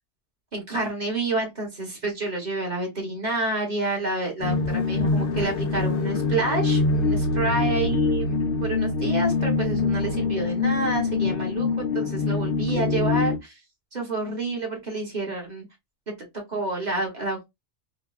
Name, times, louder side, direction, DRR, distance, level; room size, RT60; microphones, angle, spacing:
voice 1, 0.5-13.6 13.9-15.7 16.5-17.5, right 2 dB, 40° right, 1.0 m, -29 dB
sound 1, 4.4-13.4, left 4 dB, 65° left, 0.7 m, -24 dB
3.9 x 2.1 x 2.3 m
omnidirectional pair, 1.2 m